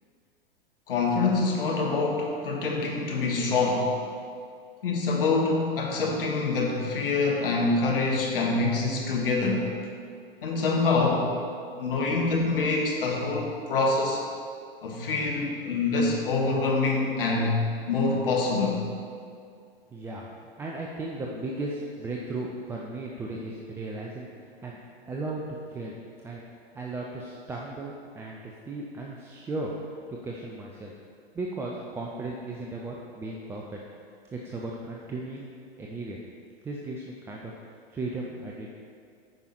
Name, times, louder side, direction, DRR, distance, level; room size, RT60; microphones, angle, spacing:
voice 1, 0.9-3.9 4.8-9.7 10.4-11.3 11.7-14.2 14.8-17.6 17.9-18.8, left 3 dB, 60° left, -1 dB, 1.6 m, -25 dB
voice 2, 19.9-24.3 24.6-24.8 25.1-26.0 26.2-26.4 26.7-29.7 30.1-30.9 31.3-33.8 34.3-35.5 35.8-36.2 36.6-37.5 37.9-38.7, right 2 dB, 10° right, -2 dB, 0.4 m, -36 dB
9.4 x 5.3 x 4.5 m, 2.3 s
figure-of-eight pair, 95°, 31 cm